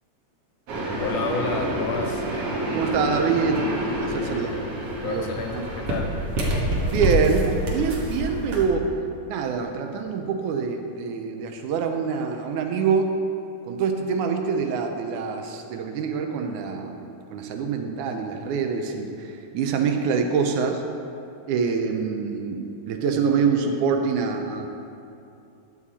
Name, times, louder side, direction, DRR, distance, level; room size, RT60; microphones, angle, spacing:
sound 1, 0.7-8.6, equal, 55° right, 2.1 m, -27 dB
voice 1, 1.0-2.2 4.1-4.7 5.0-6.2, left 4 dB, 70° left, 2 dB, 1.6 m, -30 dB
voice 2, 2.7-3.7 4.0-4.5 5.0-5.3 5.5-5.6 6.9-8.9 9.3-13.1 13.6-19.1 19.5-20.8 21.5-24.7, right 5 dB, 85° right, 4 dB, 2.3 m, -25 dB
12.0 x 7.3 x 4.2 m, 2.6 s
omnidirectional pair, 3.4 m